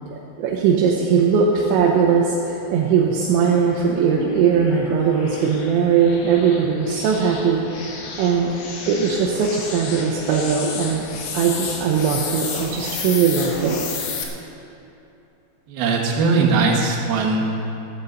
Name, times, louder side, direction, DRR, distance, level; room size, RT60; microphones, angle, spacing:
voice 1, 0.1-8.5 8.9-11.1 11.3-13.8, right 6 dB, 80° right, -1 dB, 2.9 m, -20 dB
sound 1, 2.7-14.2, left 5 dB, 70° left, 2.2 m, -33 dB
voice 2, 15.7-17.6, right 4 dB, 60° right, -3 dB, 2.9 m, -20 dB
14.5 x 14.0 x 4.0 m, 2.8 s
omnidirectional pair, 5.7 m